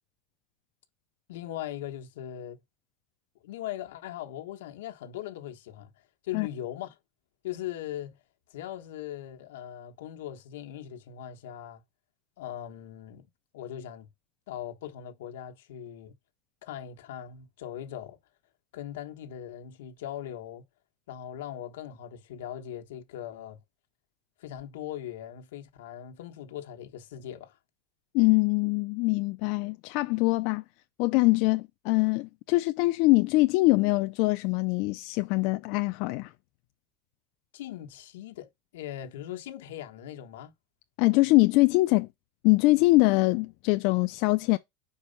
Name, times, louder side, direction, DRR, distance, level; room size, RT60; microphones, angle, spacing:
voice 1, 1.3-2.6 3.4-7.0 7.4-8.2 8.5-11.8 12.4-14.1 14.5-16.1 16.6-18.2 18.7-20.6 21.1-23.6 24.4-27.6 31.4-31.5 37.5-40.5, left 11 dB, 85° left, 1.2 m, -40 dB
voice 2, 28.1-30.6 31.0-36.3 41.0-42.1 42.4-44.6, left 23 dB, 50° left, 0.4 m, -23 dB
5.3 x 4.7 x 5.2 m
supercardioid pair, 155°, 0 cm